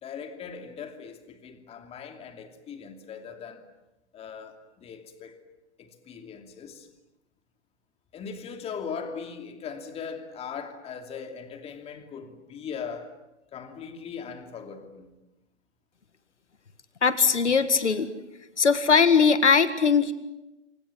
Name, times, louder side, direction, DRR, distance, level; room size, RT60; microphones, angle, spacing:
voice 1, 0.0-3.6 4.1-5.4 5.8-6.9 8.1-13.1 13.5-15.1, left 6 dB, 15° left, 2.8 m, -39 dB
voice 2, 17.0-18.1 18.6-20.1, left 5 dB, 80° left, 1.9 m, -20 dB
28.0 x 26.0 x 7.6 m
figure-of-eight pair, 125°, 35 cm